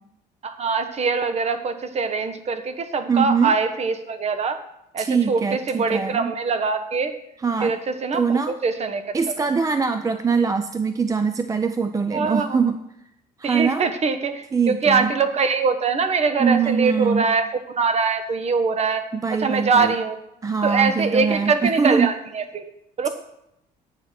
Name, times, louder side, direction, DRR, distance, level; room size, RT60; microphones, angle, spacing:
voice 1, 0.4-4.6 4.9-7.2 7.6-9.2 12.1-12.6 13.4-19.1 19.4-20.2 20.6-22.7 23.0-23.1, right 4 dB, 40° right, 9 dB, 1.2 m, -23 dB
voice 2, 3.1-3.5 5.0-6.3 7.4-7.7 8.1-8.6 9.1-12.8 13.4-13.9 14.5-15.1 16.4-17.3 19.1-19.9 20.4-22.1, right 5 dB, 20° right, 9 dB, 0.5 m, -22 dB
9.5 x 7.4 x 5.9 m, 0.82 s
cardioid pair, 110°, 17 cm